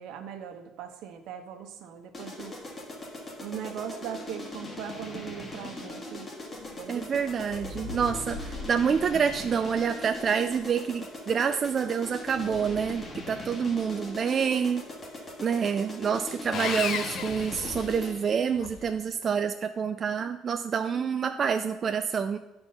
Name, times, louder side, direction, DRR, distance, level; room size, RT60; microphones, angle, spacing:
voice 1, 0.0-2.5 3.4-6.3 6.8-7.3, right 8 dB, 70° right, 7 dB, 1.0 m, -39 dB
sound 1, 2.1-18.3, left 1 dB, 20° left, 1.4 m, -41 dB
sound 2, 6.5-10.6 11.6-13.9 17.2-18.1 18.5-19.0, left 4 dB, 85° left, 0.8 m, -44 dB
voice 2, 6.9-14.9 15.4-22.4, right 6 dB, 30° right, 7 dB, 0.3 m, -27 dB
Sawing, 16.5-18.4, left 6 dB, 45° left, 0.6 m, -33 dB
10.5 x 4.4 x 5.5 m, 1.0 s
cardioid pair, 155°, 0 cm